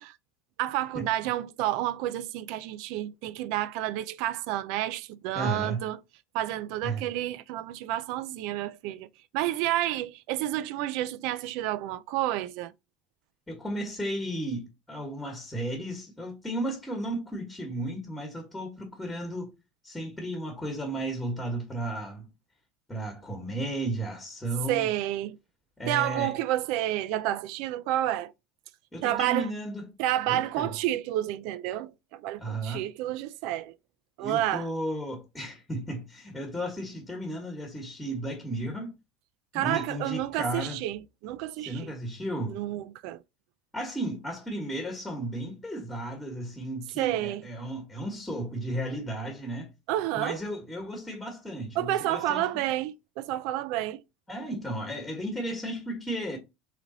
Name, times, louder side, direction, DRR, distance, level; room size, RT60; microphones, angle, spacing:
voice 1, 0.6-6.0 6.3-9.1 9.3-12.7 24.7-25.4 25.9-28.3 29.0-29.5 30.0-33.7 34.2-34.7 39.5-41.8 42.5-43.2 47.0-47.4 49.9-50.4 51.8-54.0, right 13 dB, 65° right, 0.3 m, -30 dB
voice 2, 5.3-5.8 6.8-7.0 13.5-19.5 19.8-22.3 22.9-24.9 25.8-26.3 28.9-29.9 30.3-30.7 32.4-32.8 34.2-39.0 39.5-40.8 41.6-42.6 43.7-49.7 50.1-52.5 54.3-56.4, right 1 dB, 5° left, 1.2 m, -34 dB
3.8 x 3.3 x 3.8 m
supercardioid pair, 135°, 0 cm